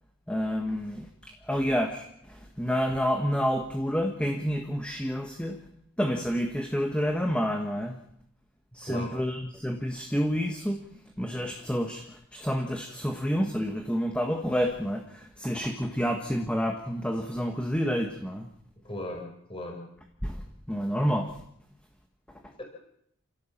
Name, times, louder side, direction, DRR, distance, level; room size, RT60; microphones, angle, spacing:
voice 1, 0.3-5.6 6.0-8.0 8.7-10.8 11.2-18.4 20.2-21.3, equal, 5° left, 4 dB, 1.5 m, -29 dB
voice 2, 18.8-19.8 22.6-22.7, left 1 dB, 25° left, 2 dB, 4.8 m, -37 dB
28.0 x 17.0 x 7.4 m, 0.73 s
head